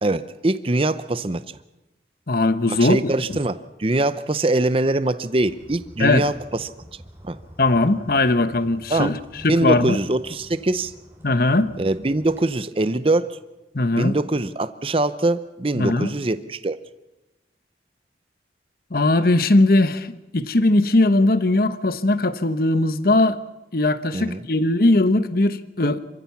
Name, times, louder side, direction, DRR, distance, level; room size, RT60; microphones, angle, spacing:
voice 1, 0.0-1.4 2.7-6.3 6.6-6.7 7.2-7.4 8.9-9.1 9.5-10.9 11.8-13.4 13.9-16.8 24.1-24.4, right 2 dB, 30° right, 0.6 m, -23 dB
voice 2, 2.3-3.0 6.0-6.3 7.6-9.2 9.4-10.0 11.2-11.7 13.7-14.1 15.7-16.1 18.9-23.4 23.7-26.0, left 2 dB, 50° left, 1.0 m, -19 dB
sound 1, 5.4-12.4, equal, 10° right, 3.1 m, -47 dB
27.0 x 15.0 x 7.1 m
head